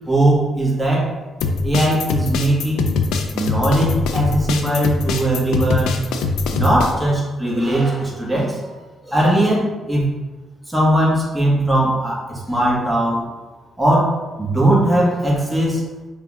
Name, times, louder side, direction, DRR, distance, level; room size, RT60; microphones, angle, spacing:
voice 1, 0.0-1.1 1.6-2.9 3.3-6.0 6.5-8.6 9.0-10.1 10.7-13.2 13.8-14.1 14.4-15.8, right 1 dB, 5° right, -5 dB, 1.5 m, -19 dB
sound 1, 1.4-6.9, left 4 dB, 85° left, 0.4 m, -22 dB
5.4 x 2.4 x 4.0 m, 1.2 s
cardioid pair, 90°, 0 cm